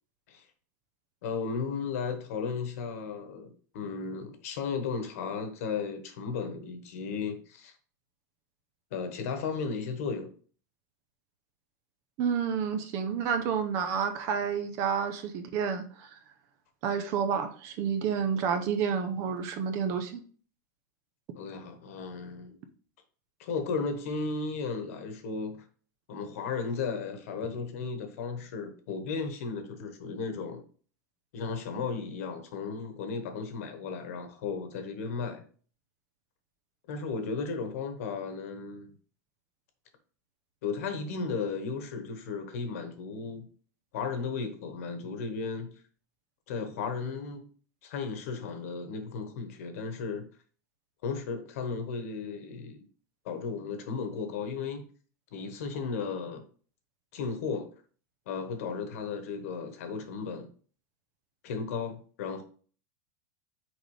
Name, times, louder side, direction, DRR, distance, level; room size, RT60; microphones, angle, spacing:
voice 1, 1.2-7.7 8.9-10.3 21.3-22.6 23.4-25.6 26.1-30.6 31.3-35.4 36.9-38.9 40.6-43.5 43.9-45.7 46.5-47.4 47.8-50.3 51.0-52.9 53.2-54.9 55.3-56.4 57.1-57.7 58.3-60.5 61.4-62.4, left 5 dB, 55° left, 1.3 m, -35 dB
voice 2, 12.2-16.1 16.8-20.2, right 7 dB, 30° right, 0.6 m, -30 dB
6.2 x 5.0 x 3.3 m
supercardioid pair, 180°, 10 cm